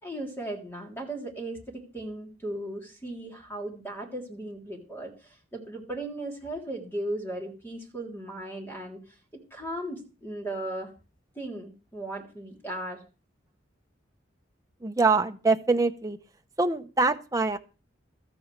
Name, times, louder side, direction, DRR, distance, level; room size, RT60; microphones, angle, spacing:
voice 1, 0.0-9.2 9.5-10.9 11.3-13.0, right 1 dB, 10° left, 0 dB, 3.3 m, -37 dB
voice 2, 14.8-16.2 16.6-17.6, right 3 dB, 15° right, 6 dB, 0.8 m, -24 dB
14.5 x 13.5 x 3.3 m, 0.33 s
head